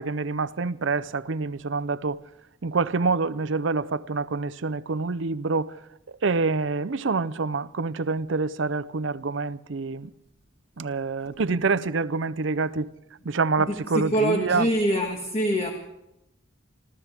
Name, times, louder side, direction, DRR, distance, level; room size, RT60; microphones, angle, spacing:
voice 1, 0.0-2.2 2.6-5.7 6.1-10.1 10.8-12.9 13.2-14.7, right 4 dB, 65° right, 0.6 m, -26 dB
voice 2, 13.6-15.7, equal, 30° left, 1.5 m, -25 dB
27.5 x 15.0 x 3.5 m
head